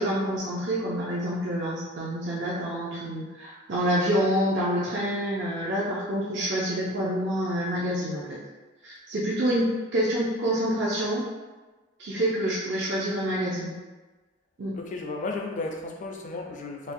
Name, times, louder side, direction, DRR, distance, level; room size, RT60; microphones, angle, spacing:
voice 1, 0.0-8.4 8.8-11.3 12.0-13.7 14.6-14.7, equal, 60° right, -6 dB, 0.5 m, -27 dB
voice 2, 14.7-16.9, left 3 dB, 40° left, 1 dB, 0.4 m, -34 dB
4.2 x 2.1 x 2.6 m, 1.2 s
head